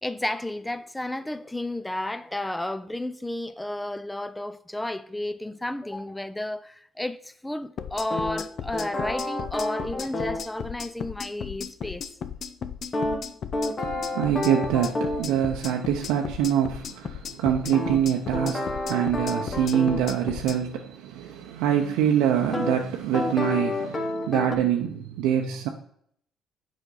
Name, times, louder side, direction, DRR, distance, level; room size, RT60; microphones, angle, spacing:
voice 1, 0.0-12.1, left 1 dB, 10° left, 0.5 m, -32 dB
sound 1, 7.8-20.6, left 7 dB, 55° left, 0.5 m, -36 dB
sound 2, 8.1-10.5 12.9-15.3 17.7-20.1 22.5-22.8 23.1-24.6, left 2 dB, 40° left, 1.1 m, -29 dB
voice 2, 13.8-25.7, right 9 dB, 85° right, 0.6 m, -25 dB
7.2 x 5.1 x 3.9 m
supercardioid pair, 80°, 0 cm